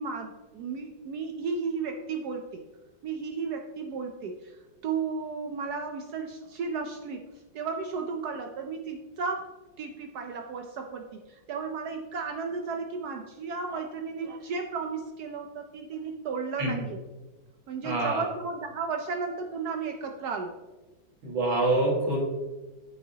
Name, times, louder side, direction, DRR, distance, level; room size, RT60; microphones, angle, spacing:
voice 1, 0.0-2.6 3.0-7.2 7.5-9.5 9.8-17.0 17.7-20.5, right 5 dB, 70° right, 4 dB, 1.0 m, -34 dB
voice 2, 17.8-18.3 21.2-22.2, right 2 dB, 85° right, -5 dB, 2.6 m, -26 dB
8.6 x 7.7 x 2.8 m, 1.1 s
omnidirectional pair, 2.1 m